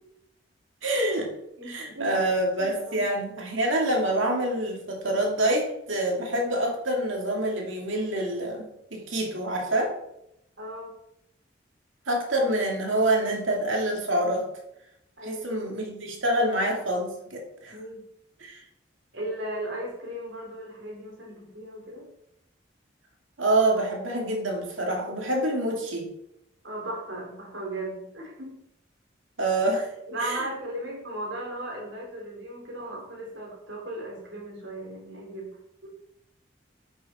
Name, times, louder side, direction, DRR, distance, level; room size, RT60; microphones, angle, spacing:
voice 1, 0.8-1.3 1.7-9.9 12.1-14.5 15.2-17.8 18.4-18.6 23.4-26.1 29.4-29.9 30.2-30.4, right 1 dB, 85° right, 0 dB, 2.4 m, -26 dB
voice 2, 1.6-2.2 2.6-3.1 10.6-10.9 15.2-15.6 17.7-18.0 19.1-22.1 26.6-28.6 30.1-35.6 35.8-35.9, right 1 dB, 70° right, -1 dB, 3.5 m, -36 dB
10.5 x 6.3 x 4.3 m, 0.81 s
head